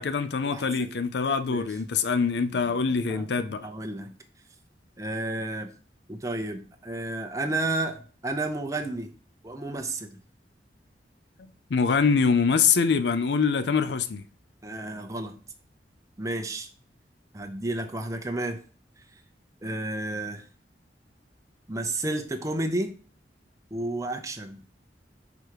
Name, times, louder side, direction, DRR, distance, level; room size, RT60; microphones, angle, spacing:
voice 1, 0.0-3.7 11.4-14.2, left 5 dB, 75° left, 0.5 m, -24 dB
voice 2, 0.5-0.9 1.5-1.7 3.1-3.2 3.6-4.1 5.0-5.7 6.1-9.1 9.4-10.2 14.6-15.4 16.2-16.7 17.3-18.6 19.6-20.4 21.7-22.9 23.7-24.6, right 2 dB, 20° right, 0.7 m, -31 dB
4.9 x 4.9 x 4.7 m
head